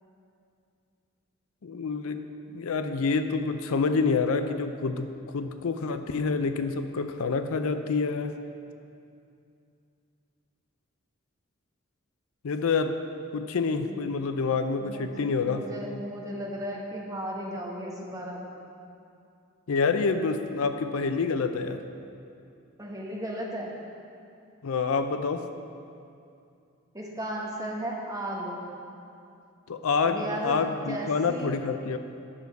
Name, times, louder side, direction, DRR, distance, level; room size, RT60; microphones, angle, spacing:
voice 1, 1.6-2.2 2.5-5.1 5.3-8.4 12.4-12.9 13.3-15.6 19.7-21.8 24.6-25.5 29.7-32.0, left 4 dB, 80° left, 8 dB, 0.5 m, -27 dB
voice 2, 14.8-18.4 22.8-23.7 26.9-28.6 30.0-31.6, right 1 dB, 15° right, -2 dB, 1.1 m, -35 dB
9.8 x 6.9 x 4.6 m, 2.5 s
head